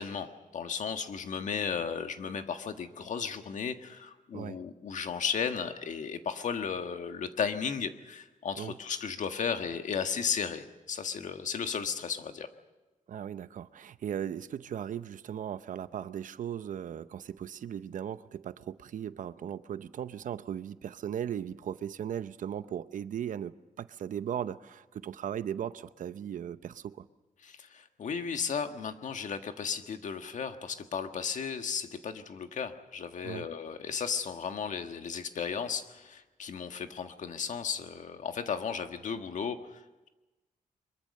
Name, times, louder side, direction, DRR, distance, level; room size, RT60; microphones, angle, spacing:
voice 1, 0.0-12.5 27.4-39.8, left 6 dB, 65° left, 7 dB, 1.6 m, -35 dB
voice 2, 13.1-27.0 33.2-33.5, right 9 dB, 75° right, 14 dB, 0.8 m, -37 dB
23.5 x 22.5 x 6.7 m, 1.1 s
wide cardioid pair, 120°, 14 cm